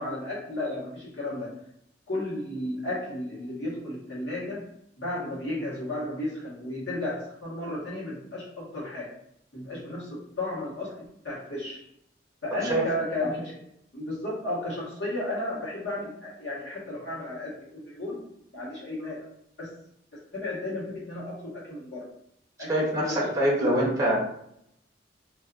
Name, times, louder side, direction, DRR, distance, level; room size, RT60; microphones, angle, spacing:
voice 1, 0.0-1.6 2.1-4.7 5.0-9.1 9.5-11.8 12.4-13.7 13.9-18.3 18.5-19.2 19.6-19.7 20.1-22.1 22.6-23.3 23.6-23.7, left 1 dB, 80° left, -6 dB, 1.3 m, -33 dB
voice 2, 22.7-24.2, right 1 dB, 20° right, -4 dB, 0.7 m, -24 dB
2.6 x 2.4 x 2.4 m, 0.74 s
head